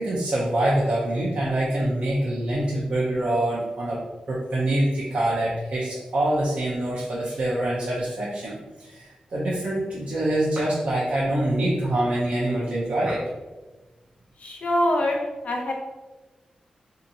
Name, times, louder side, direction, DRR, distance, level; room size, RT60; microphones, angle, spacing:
voice 1, 0.0-4.0 4.3-13.2, right 1 dB, 60° right, -6 dB, 0.6 m, -25 dB
voice 2, 14.4-15.7, left 1 dB, 60° left, 0 dB, 0.5 m, -24 dB
2.7 x 2.5 x 2.6 m, 1.2 s
wide cardioid pair, 90°, 2 cm